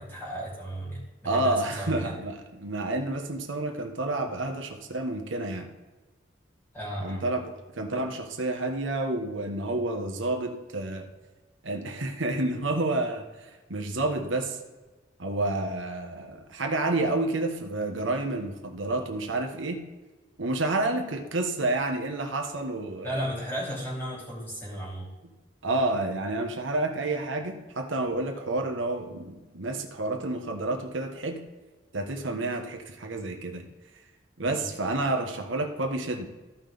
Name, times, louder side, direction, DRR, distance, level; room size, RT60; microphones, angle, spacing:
voice 1, 0.0-2.2 6.7-7.3 23.0-25.1 34.4-34.7, equal, 10° left, -5 dB, 3.4 m, -34 dB
voice 2, 1.2-5.7 7.0-7.5 7.7-11.1 11.6-14.6 15.2-19.9 20.4-23.2 25.6-31.4 31.9-33.7 34.4-36.3, right 2 dB, 85° right, 3 dB, 1.3 m, -29 dB
14.5 x 5.8 x 3.5 m, 1.2 s
head